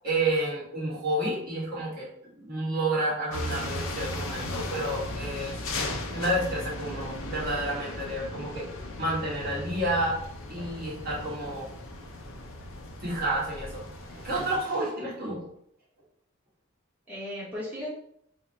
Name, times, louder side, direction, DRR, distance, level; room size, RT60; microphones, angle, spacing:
voice 1, 0.0-5.6 6.1-8.7 9.0-10.2 10.5-11.6 13.0-15.4, right 1 dB, 45° right, -6 dB, 1.4 m, -30 dB
sound 1, 3.3-14.6, left 1 dB, 70° left, 0.6 m, -37 dB
voice 2, 17.1-17.9, left 1 dB, 10° right, -10 dB, 0.9 m, -38 dB
3.6 x 2.1 x 4.1 m, 0.71 s
head